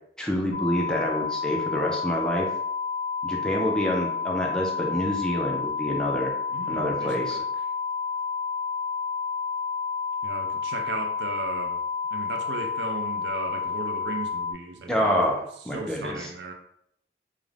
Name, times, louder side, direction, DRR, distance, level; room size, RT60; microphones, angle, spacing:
voice 1, 0.2-2.5 3.2-6.3 6.7-7.4 14.9-16.3, equal, 5° left, -2 dB, 0.4 m, -27 dB
sound 1, 0.5-14.5, left 5 dB, 70° left, 0.4 m, -30 dB
voice 2, 6.5-7.5 10.2-11.8 12.1-15.1 15.7-16.5, right 3 dB, 70° right, 4 dB, 0.4 m, -36 dB
2.4 x 2.0 x 3.1 m, 0.71 s
head